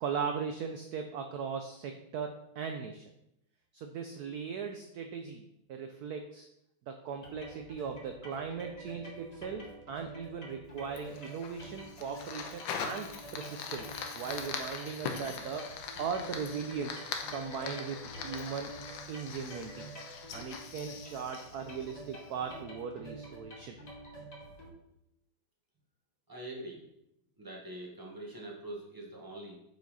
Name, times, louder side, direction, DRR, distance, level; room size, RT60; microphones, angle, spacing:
voice 1, 0.0-3.0 3.7-6.5 6.9-15.7 16.0-17.0 17.3-18.7 19.1-19.9 20.3-23.8, right 6 dB, 85° right, 5 dB, 0.8 m, -38 dB
sound 1, 7.2-24.7, right 1 dB, 25° left, 1.1 m, -48 dB
Fire, 11.0-22.3, left 6 dB, 70° left, 1.4 m, -42 dB
voice 2, 26.3-26.8 27.4-29.6, right 1 dB, 15° right, -2 dB, 0.9 m, -44 dB
6.4 x 5.1 x 4.0 m, 0.81 s
omnidirectional pair, 2.2 m